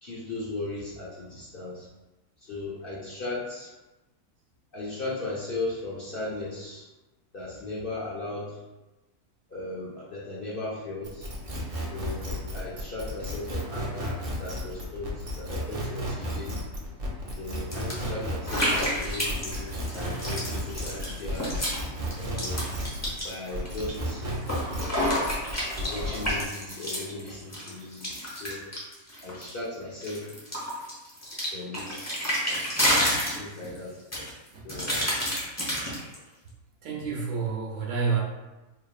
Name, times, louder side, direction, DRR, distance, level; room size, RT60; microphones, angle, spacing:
voice 1, 0.0-1.9 2.4-3.7 4.7-6.9 7.3-8.6 9.5-11.3 11.9-16.6 17.4-21.5 22.2-22.7 23.2-24.2 25.8-28.6 29.2-30.3 31.5-32.1 32.5-32.7 33.3-34.3 34.6-35.2, left 2 dB, 50° left, -7 dB, 0.7 m, -37 dB
sound 1, 11.0-23.2 23.5-26.4, equal, 50° right, 0.4 m, -33 dB
sound 2, 17.7-17.9 18.5-21.8 22.1-23.9 24.3-29.6 30.0-33.8 34.1-36.1, equal, 15° left, 0.7 m, -30 dB
voice 2, 36.8-38.2, right 5 dB, 80° right, -1 dB, 1.3 m, -29 dB
4.1 x 3.1 x 2.4 m, 1.1 s
omnidirectional pair, 1.6 m